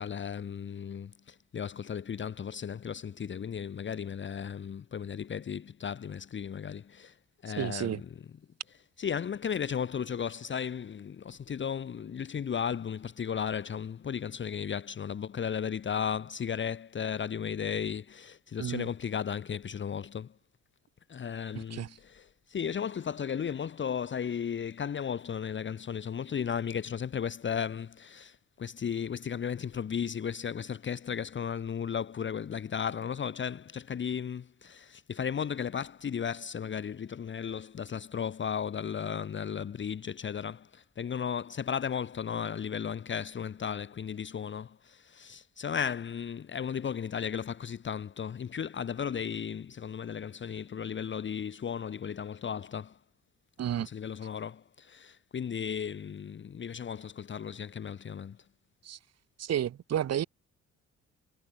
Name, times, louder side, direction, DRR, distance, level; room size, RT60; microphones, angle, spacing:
voice 1, 0.0-7.2 7.4-8.1 9.0-20.3 21.1-53.0 53.8-58.4, left 7 dB, 40° left, 1.0 m, -35 dB
voice 2, 7.6-8.0 18.6-18.9 21.5-21.9 53.6-53.9 58.8-59.0 59.4-60.2, right 10 dB, 55° right, 1.3 m, -31 dB
cardioid pair, 90°, 30 cm